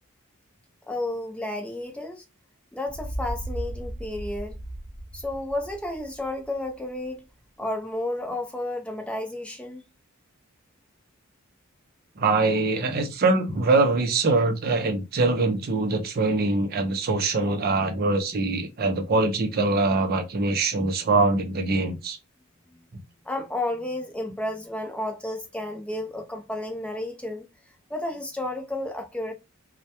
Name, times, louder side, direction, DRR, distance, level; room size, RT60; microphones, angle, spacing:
voice 1, 0.9-2.2 2.7-4.6 5.1-7.2 7.6-9.9 23.3-27.5 27.9-29.3, left 1 dB, 5° left, 0.4 m, -32 dB
sound 1, 2.9-6.7, right 1 dB, 25° right, 0.8 m, -36 dB
voice 2, 12.2-22.2, right 3 dB, 45° right, 0.5 m, -23 dB
2.2 x 2.1 x 2.7 m
head